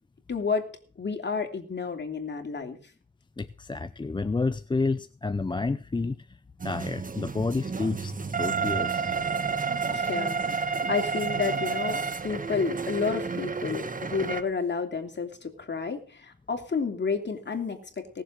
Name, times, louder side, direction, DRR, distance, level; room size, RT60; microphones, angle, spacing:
voice 1, 0.3-0.7 1.0-2.8 9.9-18.2, left 5 dB, 35° left, 5 dB, 3.0 m, -31 dB
voice 2, 3.4-6.4 6.6-9.2, left 3 dB, 15° left, 12 dB, 0.5 m, -30 dB
sound 1, 6.6-14.4, right 5 dB, 25° right, 1.2 m, -30 dB
18.0 x 7.4 x 6.4 m, 0.42 s
cardioid pair, 90°, 31 cm